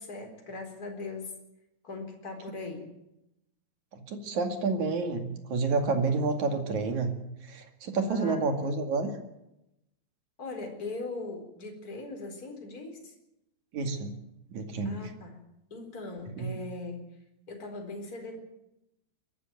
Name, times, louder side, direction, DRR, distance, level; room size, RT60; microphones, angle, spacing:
voice 1, 0.0-1.3 1.8-2.9 8.1-8.4 10.4-13.1 14.8-15.4 15.7-17.0 17.5-18.4, left 2 dB, 25° left, 3 dB, 4.4 m, -39 dB
voice 2, 3.9-7.1 7.4-9.1 13.7-14.1 14.5-15.0 16.4-16.5, right 4 dB, 55° right, 6 dB, 3.4 m, -29 dB
22.5 x 13.0 x 9.3 m, 0.86 s
omnidirectional pair, 4.2 m